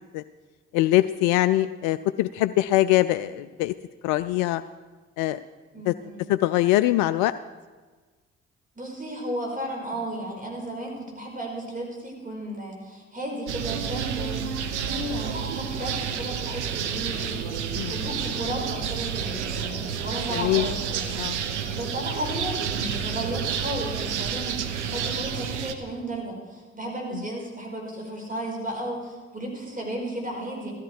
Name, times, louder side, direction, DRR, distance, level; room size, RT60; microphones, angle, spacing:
voice 1, 0.7-3.7 4.0-4.6 5.2-5.4 5.9-6.0 6.3-7.3 17.7-18.0 20.3-20.7 21.1-21.4, left 15 dB, 65° left, 13 dB, 0.5 m, -22 dB
voice 2, 5.7-6.2 8.8-17.5 17.9-21.0 21.7-24.6 24.9-30.7, right 1 dB, 25° right, 0 dB, 5.3 m, -34 dB
sound 1, 13.5-25.7, right 7 dB, 85° right, 0.8 m, -30 dB
15.5 x 14.0 x 4.6 m, 1.4 s
figure-of-eight pair, 45°, 34 cm